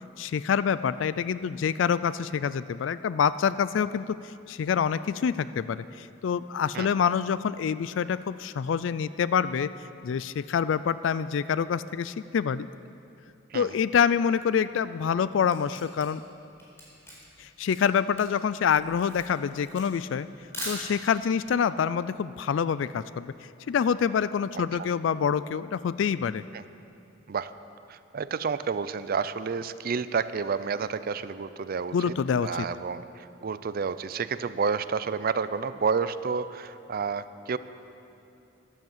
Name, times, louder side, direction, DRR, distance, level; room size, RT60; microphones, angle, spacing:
voice 1, 0.2-9.7 10.0-12.7 13.5-16.2 17.4-20.3 20.7-23.3 23.7-26.4 31.9-32.7, left 7 dB, 75° left, 15 dB, 0.3 m, -26 dB
Camera, 15.5-21.3, equal, 15° left, 4.2 m, -41 dB
voice 2, 27.9-32.1 32.4-37.6, right 5 dB, 50° right, 14 dB, 0.5 m, -30 dB
13.0 x 12.5 x 7.3 m, 2.7 s
head